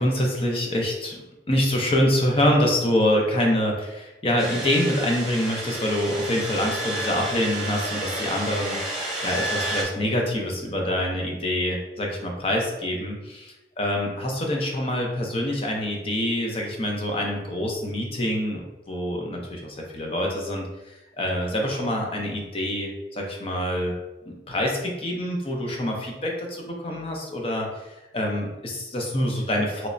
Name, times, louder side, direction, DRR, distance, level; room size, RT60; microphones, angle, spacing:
voice 1, 0.0-8.9 9.2-23.9 24.3-29.9, left 1 dB, 30° left, 0 dB, 0.6 m, -26 dB
sound 1, 4.4-9.8, right 1 dB, 5° right, 0.8 m, -31 dB
3.2 x 3.1 x 2.6 m, 1.0 s
head